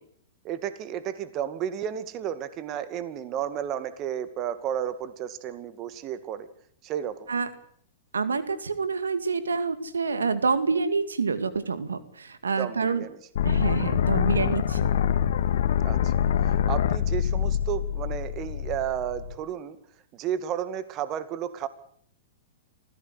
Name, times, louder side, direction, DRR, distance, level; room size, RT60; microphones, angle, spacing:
voice 1, 0.4-6.5 6.8-7.3 12.6-13.2 15.8-16.1 16.4-19.8 20.1-21.7, right 10 dB, 35° right, 13 dB, 2.2 m, -32 dB
voice 2, 8.1-13.1 13.4-14.9, right 5 dB, 85° right, 12 dB, 2.3 m, -27 dB
sound 1, 13.4-19.3, left 9 dB, 65° left, 2.1 m, -25 dB
27.0 x 16.0 x 8.3 m, 0.62 s
hypercardioid pair, 115°, 0 cm